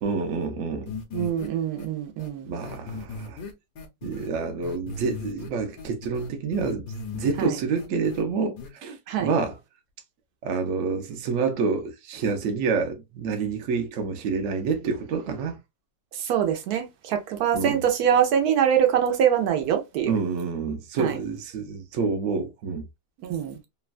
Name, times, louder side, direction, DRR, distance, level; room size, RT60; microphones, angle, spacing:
voice 1, 0.0-0.9 2.5-3.4 4.0-6.8 7.1-9.6 10.4-15.6 17.5-17.8 20.1-22.8, right 5 dB, 65° right, 0.9 m, -28 dB
sound 1, 0.9-1.5 1.8-1.9 2.2-2.3 2.6-4.3 4.6-5.5 5.8-7.5 7.8-8.2 8.6-8.7, left 4 dB, 75° left, 1.2 m, -37 dB
voice 2, 1.1-2.5 7.4-7.5 9.1-9.3 16.2-20.1 21.0-21.2 23.2-23.6, right 9 dB, 85° right, 1.2 m, -24 dB
3.1 x 2.2 x 2.4 m
omnidirectional pair, 1.6 m